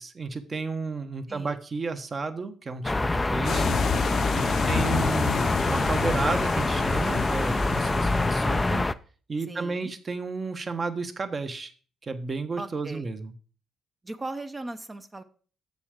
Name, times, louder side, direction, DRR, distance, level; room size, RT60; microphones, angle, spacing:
voice 1, 0.0-3.7 4.3-8.8 9.3-11.7 12.0-13.3, right 4 dB, 35° right, 9 dB, 1.2 m, -32 dB
sound 1, 2.8-8.9, left 2 dB, 15° left, 0.5 m, -25 dB
sound 2, 3.4-8.8, left 7 dB, 65° left, 0.8 m, -30 dB
voice 2, 4.4-4.9 9.5-9.9 12.6-13.1 14.0-15.2, right 2 dB, 20° right, 8 dB, 0.8 m, -38 dB
7.0 x 7.0 x 6.6 m, 0.41 s
cardioid pair, 90°, 0 cm